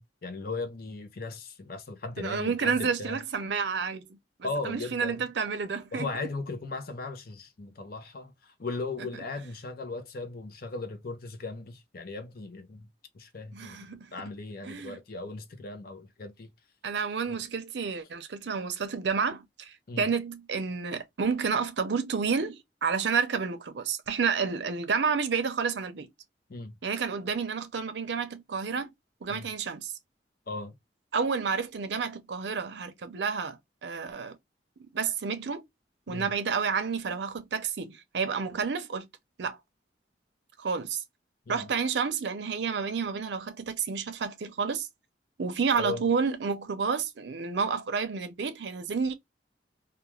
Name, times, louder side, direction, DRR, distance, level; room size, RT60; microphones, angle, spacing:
voice 1, 0.0-3.2 4.4-5.3 5.9-12.9 13.1-16.5 17.3-17.4 19.9-20.1 26.5-26.7 29.3-29.5 30.5-30.7 36.1-36.3 41.5-41.7 45.8-46.0, left 3 dB, 55° left, 0.6 m, -37 dB
voice 2, 2.2-6.1 9.0-9.1 13.5-14.1 14.6-15.0 16.8-26.1 26.8-28.9 29.2-29.9 31.1-34.4 34.9-35.7 36.1-39.1 39.4-39.6 40.6-41.0 41.5-44.9 45.4-49.1, right 5 dB, 70° right, 0.5 m, -30 dB
2.3 x 2.3 x 3.0 m
head